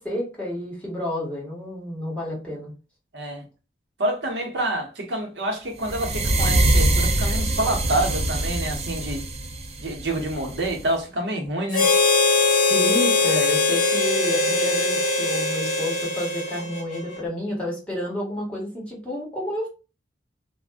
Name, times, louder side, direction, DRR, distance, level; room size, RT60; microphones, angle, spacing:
voice 1, 0.0-2.7 12.6-19.7, left 1 dB, 5° left, 1.2 m, -30 dB
voice 2, 3.1-3.4 4.0-9.3 9.8-11.9, right 1 dB, 75° right, 0.8 m, -27 dB
sound 1, 5.8-10.9, right 1 dB, 35° right, 0.5 m, -23 dB
Harmonica, 11.7-17.2, left 3 dB, 50° left, 0.6 m, -21 dB
2.5 x 2.1 x 3.4 m
head